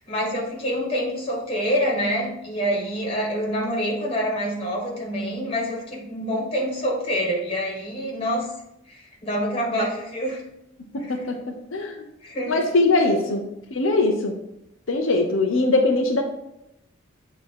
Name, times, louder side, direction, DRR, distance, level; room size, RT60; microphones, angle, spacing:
voice 1, 0.1-8.5 8.9-10.4 10.9-11.3 12.2-12.6, equal, 30° left, -2 dB, 1.8 m, -26 dB
voice 2, 10.9-12.0 12.5-13.4 13.7-14.3 14.9-16.2, left 2 dB, 90° left, 3 dB, 0.8 m, -21 dB
8.3 x 2.9 x 4.7 m, 0.82 s
head